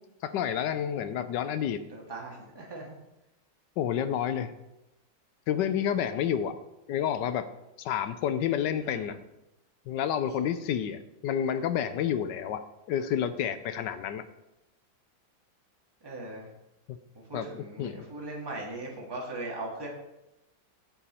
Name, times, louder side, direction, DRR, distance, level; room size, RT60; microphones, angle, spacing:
voice 1, 0.2-1.8 3.8-4.5 5.5-6.6 6.9-7.5 7.8-9.2 9.9-12.6 12.9-14.2 16.9-17.0 17.3-17.5 17.8-18.1, left 9 dB, 75° left, 11 dB, 1.2 m, -29 dB
voice 2, 1.9-2.9 8.8-9.1 10.2-10.4 16.0-16.5 17.1-19.9, right 2 dB, 15° right, -2 dB, 1.7 m, -39 dB
9.0 x 7.1 x 4.3 m, 0.94 s
omnidirectional pair, 2.0 m